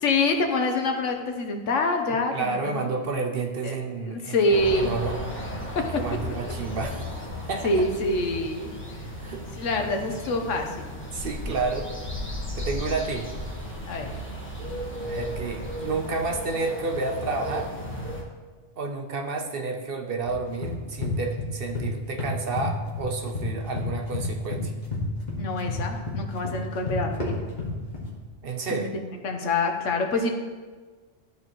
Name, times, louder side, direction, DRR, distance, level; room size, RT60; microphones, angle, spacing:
voice 1, 0.0-2.8 3.6-3.8 4.0-4.9 5.7-5.9 7.6-8.7 9.6-10.9 13.9-14.1 25.4-27.3 28.7-30.3, left 2 dB, 80° left, 4 dB, 1.2 m, -26 dB
voice 2, 2.3-5.2 5.9-7.0 7.5-7.9 9.2-9.4 11.1-11.9 12.6-13.3 15.0-17.7 18.8-24.7 28.4-28.9, right 3 dB, 55° right, 3 dB, 0.9 m, -30 dB
sound 1, 4.5-18.2, equal, 10° left, 1.2 m, -35 dB
sound 2, 20.3-21.9 22.2-23.5 23.8-28.1, left 3 dB, 40° left, 1.7 m, -30 dB
13.5 x 4.6 x 3.0 m, 1.4 s
omnidirectional pair, 1.3 m